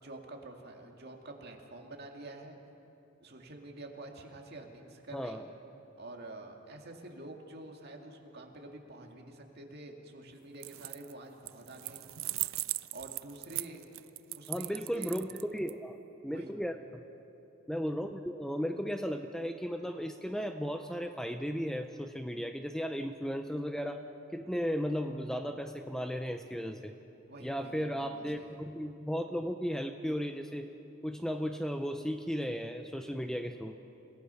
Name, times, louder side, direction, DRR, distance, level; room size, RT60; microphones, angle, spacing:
voice 1, 0.0-2.6 3.2-5.4 6.0-12.1 12.9-13.8 14.4-15.2 16.2-16.5 27.3-28.6, right 2 dB, 50° right, 2 dB, 2.2 m, -48 dB
voice 2, 5.1-5.4 14.5-16.0 16.2-17.0 17.7-24.0 24.3-27.0 27.4-30.7 31.0-33.8, equal, 5° left, 6 dB, 0.6 m, -35 dB
sound 1, 10.5-11.1 11.5-15.7, right 18 dB, 65° right, 0.4 m, -38 dB
29.5 x 17.5 x 5.7 m, 2.9 s
head